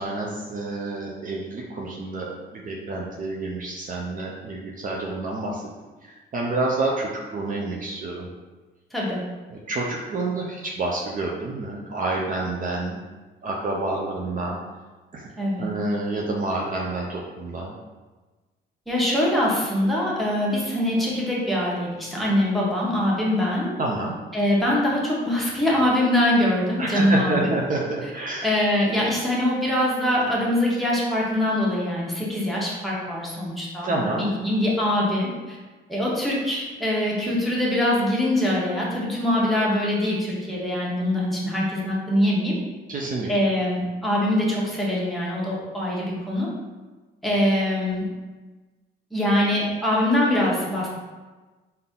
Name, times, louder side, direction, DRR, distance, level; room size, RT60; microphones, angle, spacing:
voice 1, 0.0-5.6 6.0-8.3 9.5-13.0 13.4-14.6 15.1-15.3 15.6-17.7 23.8-24.2 26.8-28.5 33.8-34.3 42.9-43.3, right 2 dB, 45° right, -2 dB, 0.6 m, -28 dB
voice 2, 8.9-9.2 15.4-15.7 18.9-23.7 24.3-27.5 28.4-35.6 35.9-42.6 43.3-46.5 47.2-48.0 49.1-50.9, left 1 dB, ahead, -6 dB, 1.2 m, -23 dB
3.9 x 2.7 x 3.7 m, 1.2 s
cardioid pair, 90°, 20 cm